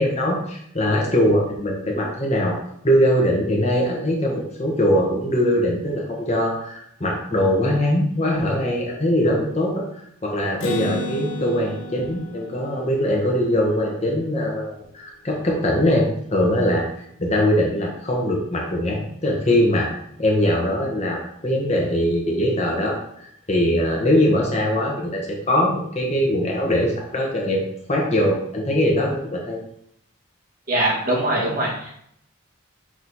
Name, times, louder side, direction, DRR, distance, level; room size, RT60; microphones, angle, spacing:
voice 1, 0.0-2.6 2.8-9.8 10.2-16.9 17.2-19.9 20.2-29.6, equal, 30° left, -2 dB, 1.2 m, -21 dB
Acoustic guitar, 10.6-14.3, left 1 dB, 65° left, 0.7 m, -32 dB
voice 2, 30.7-31.9, right 1 dB, 45° right, -4 dB, 2.0 m, -22 dB
6.3 x 4.1 x 4.1 m, 0.71 s
head